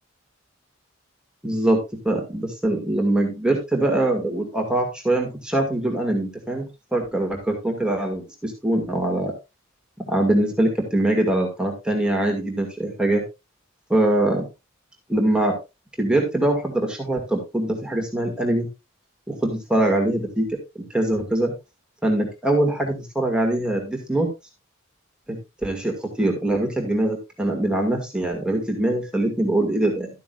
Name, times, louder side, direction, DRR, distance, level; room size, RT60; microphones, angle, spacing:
voice 1, 1.4-9.3 10.0-13.2 13.9-14.5 15.1-15.6 16.0-18.7 19.3-21.5 22.0-24.3 25.3-30.1, right 1 dB, 5° right, 1 dB, 2.3 m, -23 dB
13.0 x 9.2 x 2.5 m, 0.25 s
head